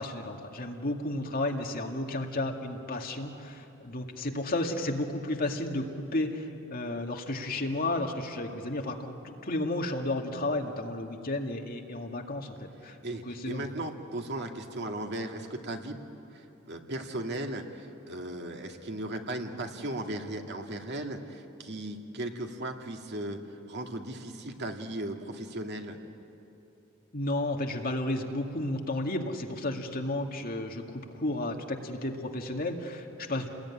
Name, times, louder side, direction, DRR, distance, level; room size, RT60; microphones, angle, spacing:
voice 1, 0.0-12.6 12.8-13.0 13.3-13.6 27.1-33.5, left 1 dB, 45° left, 2 dB, 2.1 m, -32 dB
voice 2, 13.0-16.0 16.3-26.0, right 1 dB, 55° right, 3 dB, 2.1 m, -37 dB
29.5 x 20.5 x 9.9 m, 3.0 s
head